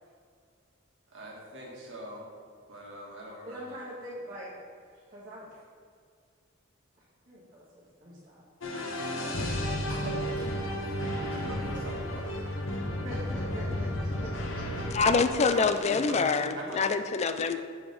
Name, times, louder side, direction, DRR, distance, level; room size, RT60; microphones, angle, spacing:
voice 1, 1.1-2.3 2.7-3.7 9.9-12.3 15.5-16.8, right 1 dB, 70° right, -3 dB, 1.6 m, -42 dB
voice 2, 3.4-4.5 5.1-5.6 7.3-7.6 8.0-8.4 12.8-15.0, equal, 40° right, -11 dB, 2.0 m, -43 dB
sound 1, 8.6-15.2, left 1 dB, 75° left, 0.9 m, -32 dB
voice 3, 14.9-17.6, left 4 dB, 35° left, 9 dB, 0.4 m, -25 dB
7.1 x 5.0 x 5.1 m, 2.2 s
head